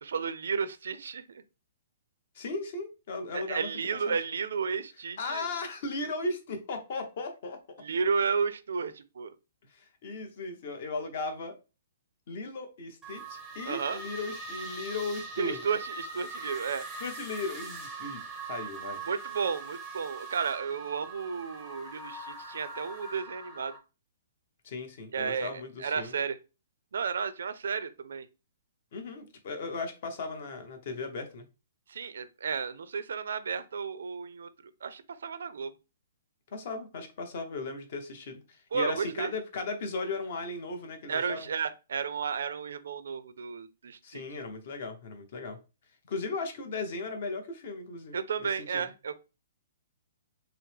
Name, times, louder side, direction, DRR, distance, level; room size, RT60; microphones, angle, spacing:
voice 1, 0.0-1.4 3.3-5.5 7.8-9.4 13.7-14.0 15.4-16.9 19.1-23.7 25.1-26.4 26.9-28.3 31.9-34.5 34.8-35.7 38.7-39.3 41.1-44.2 48.1-49.2, right 6 dB, 80° right, 0.4 m, -33 dB
voice 2, 2.3-3.7 4.1-4.2 5.2-7.6 9.7-11.5 12.3-15.6 17.0-19.0 24.6-26.1 28.9-31.4 36.5-41.5 44.0-45.6 46.1-48.9, left 3 dB, 40° left, 0.8 m, -37 dB
sound 1, 13.0-23.8, right 3 dB, 5° right, 0.7 m, -42 dB
5.7 x 2.0 x 3.2 m
hypercardioid pair, 175°, 0 cm